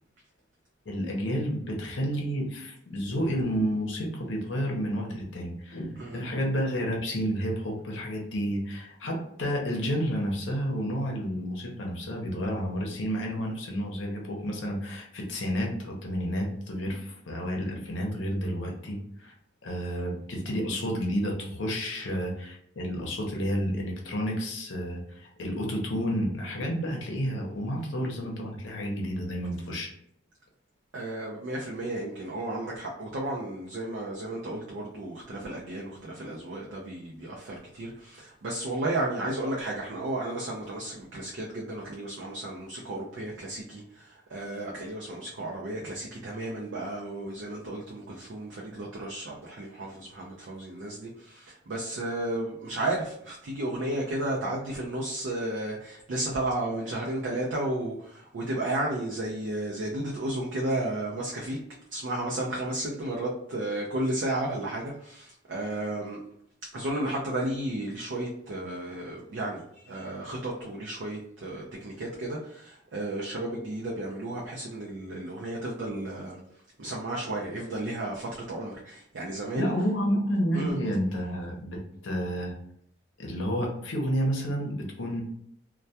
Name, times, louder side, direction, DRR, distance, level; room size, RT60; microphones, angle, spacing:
voice 1, 0.9-19.3 19.6-29.9 79.5-82.5 83.2-85.2, equal, 75° left, 0 dB, 0.6 m, -30 dB
voice 2, 30.9-61.6 61.9-66.2 66.7-76.4 76.8-79.7 80.5-80.8, right 1 dB, 70° right, -3 dB, 0.4 m, -33 dB
2.2 x 2.2 x 2.7 m, 0.70 s
head